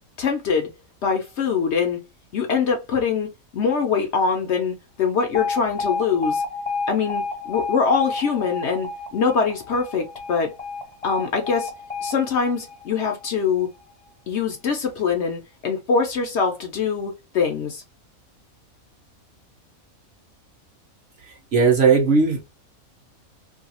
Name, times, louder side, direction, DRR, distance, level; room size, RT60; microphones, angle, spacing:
voice 1, 0.2-0.7 1.0-2.0 2.3-6.4 6.9-10.5 11.0-11.7 12.0-13.7 14.3-17.8, left 5 dB, 60° left, 0.8 m, -23 dB
Alarm, 5.3-13.4, left 4 dB, 30° left, 0.8 m, -30 dB
voice 2, 21.5-22.5, right 5 dB, 55° right, 0.9 m, -17 dB
2.6 x 2.3 x 2.8 m
omnidirectional pair, 1.5 m